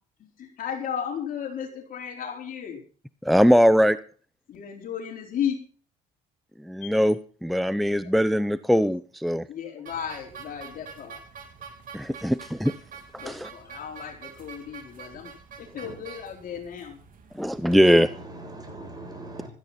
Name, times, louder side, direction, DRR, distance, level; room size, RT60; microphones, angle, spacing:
voice 1, 0.2-2.8 4.5-5.6 6.8-7.0 8.0-8.1 9.5-11.2 13.2-15.3 15.6-17.0, left 8 dB, 55° left, 4.4 m, -34 dB
voice 2, 3.2-4.0 6.7-9.5 11.9-12.7 13.3-13.5 17.4-18.1, equal, ahead, 0.6 m, -21 dB
sound 1, 9.9-17.8, right 6 dB, 55° right, 3.4 m, -46 dB
voice 3, 17.5-19.5, right 2 dB, 25° right, 7.7 m, -41 dB
16.0 x 13.5 x 4.2 m
cardioid pair, 110°, 17 cm